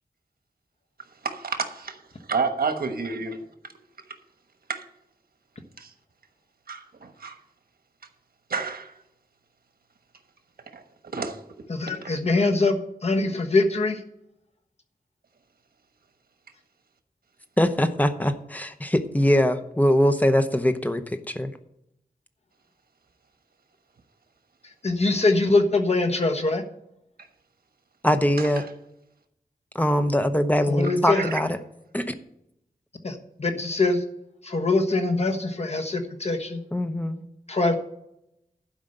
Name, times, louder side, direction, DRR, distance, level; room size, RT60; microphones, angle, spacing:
voice 1, 1.2-2.0 2.3-3.3 4.7-4.8 5.8-5.9 6.7-7.4 8.5-8.9 10.7-11.4 11.9-12.1 27.2-27.3 28.4-28.7 31.1-31.4, right 5 dB, 85° right, 1.2 m, -30 dB
voice 2, 11.7-14.0 24.8-26.6 30.7-31.2 33.0-34.0 34.4-36.6 37.5-37.8, left 3 dB, 45° left, 1.3 m, -23 dB
voice 3, 17.6-21.5 28.0-28.7 29.7-31.6 31.9-32.1 36.7-37.2, equal, 10° left, 0.9 m, -22 dB
12.0 x 5.1 x 7.8 m
wide cardioid pair, 95°, 15 cm